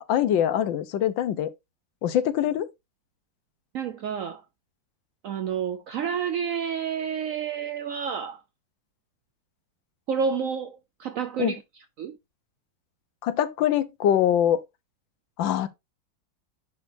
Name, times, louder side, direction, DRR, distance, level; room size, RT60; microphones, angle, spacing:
voice 1, 0.0-1.5 2.0-2.7 11.4-11.6 13.2-14.6 15.4-15.7, left 10 dB, 90° left, 1.5 m, -23 dB
voice 2, 3.7-4.4 5.2-8.4 10.1-11.6 12.0-12.2, right 7 dB, 75° right, 0.7 m, -29 dB
10.5 x 3.7 x 2.6 m
omnidirectional pair, 2.0 m